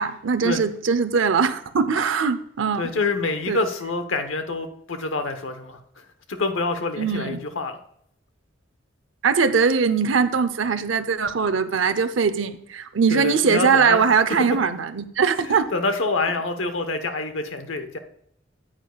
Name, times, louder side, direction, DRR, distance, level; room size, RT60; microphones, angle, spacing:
voice 1, 0.0-2.9 3.5-3.6 7.0-7.4 9.2-15.7, right 5 dB, 75° right, 11 dB, 0.6 m, -21 dB
voice 2, 2.8-7.8 13.1-14.1 14.5-14.6 15.4-18.0, left 3 dB, 85° left, 8 dB, 1.0 m, -27 dB
9.2 x 9.0 x 2.3 m, 0.71 s
head